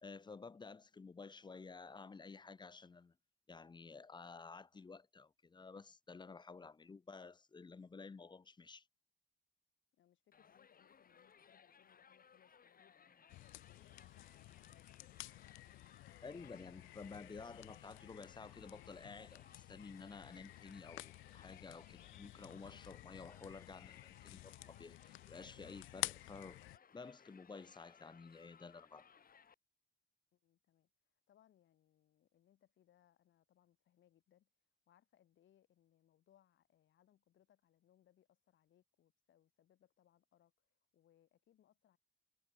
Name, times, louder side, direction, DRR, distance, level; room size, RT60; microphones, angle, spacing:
voice 1, 0.0-3.1 3.5-8.9 16.2-26.6 26.9-29.1, left 4 dB, 20° left, 0.7 m, -53 dB
voice 2, 9.9-15.1 30.3-42.0, left 11 dB, 70° left, 5.1 m, -73 dB
Crowd, 10.3-29.6, left 7 dB, 45° left, 4.6 m, -65 dB
sound 1, 13.3-26.8, left 19 dB, 85° left, 0.4 m, -51 dB
cardioid pair, 90°, 20 cm